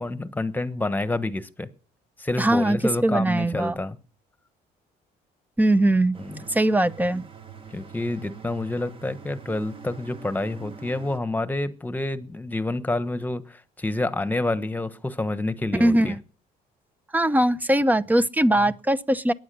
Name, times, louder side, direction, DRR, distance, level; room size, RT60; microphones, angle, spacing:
voice 1, 0.0-1.7 2.2-4.0 6.2-6.4 7.7-16.1, left 2 dB, 10° left, 1.3 m, -28 dB
voice 2, 2.4-2.8 3.0-3.8 5.6-6.2 6.5-7.3 15.8-16.2 17.1-19.3, right 1 dB, 10° right, 0.8 m, -21 dB
sound 1, 6.1-11.2, right 6 dB, 30° right, 1.4 m, -44 dB
21.5 x 9.6 x 6.9 m
cardioid pair, 110°, 17 cm